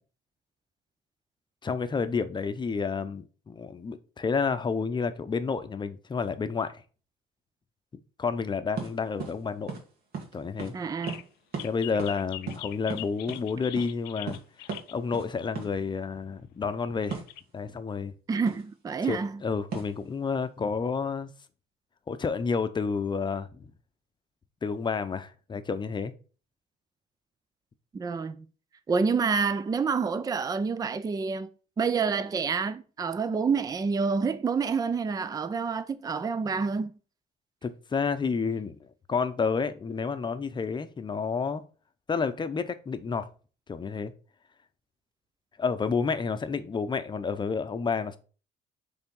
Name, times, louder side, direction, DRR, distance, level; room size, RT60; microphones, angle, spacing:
voice 1, 1.6-6.8 8.2-9.7 10.3-10.7 11.6-14.4 14.9-17.2 17.5-18.1 19.1-21.3 22.1-23.7 24.6-26.1 37.6-41.6 42.1-43.3 43.7-44.1 45.6-48.2, left 5 dB, 25° left, 0.7 m, -30 dB
sound 1, 8.8-8.9 9.2-9.4 9.7-9.8 10.1-10.3 10.6-10.7 11.1-11.2 11.5-11.7 12.0-12.2 12.5-13.4 13.8-13.9 14.3-14.4 14.7-14.8 15.1-15.3 15.5-15.7 17.1-17.3 18.5-18.7 19.7-20.0, right 5 dB, 65° right, 2.1 m, -36 dB
sound 2, 10.7-10.8 11.0-11.2 11.6-15.0 16.4-16.5 17.0-17.4, left 15 dB, 80° left, 0.4 m, -42 dB
voice 2, 10.7-11.2 18.3-19.4 27.9-28.5 28.9-31.5 31.8-37.0, right 5 dB, 20° right, 0.5 m, -28 dB
6.8 x 3.5 x 5.4 m
cardioid pair, 110°, 17 cm